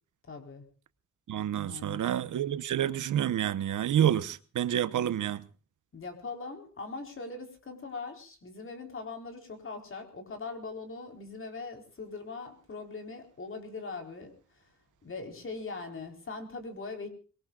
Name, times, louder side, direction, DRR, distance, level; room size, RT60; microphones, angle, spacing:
voice 1, 0.3-0.6 1.7-2.0 5.9-14.3 15.0-17.1, left 3 dB, 45° left, 4.1 m, -41 dB
voice 2, 1.3-5.5, right 10 dB, 85° right, 1.0 m, -28 dB
24.5 x 21.5 x 2.4 m
wide cardioid pair, 145°, 30 cm